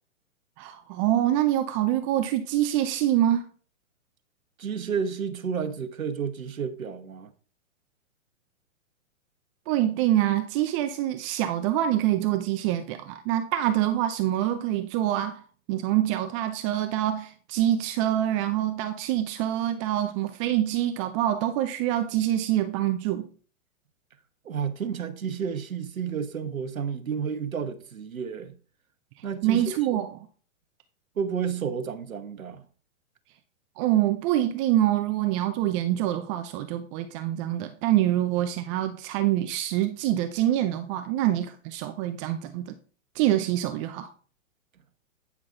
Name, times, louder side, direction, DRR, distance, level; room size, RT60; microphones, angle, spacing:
voice 1, 0.6-3.5 9.7-15.4 15.7-23.3 29.4-30.1 33.8-42.8 43.1-44.1, right 12 dB, 25° right, 0.5 m, -25 dB
voice 2, 4.6-7.3 24.4-28.6 29.2-30.1 31.2-32.6, right 7 dB, 85° right, 1.3 m, -31 dB
9.9 x 5.9 x 3.8 m
hypercardioid pair, 125°, 40 cm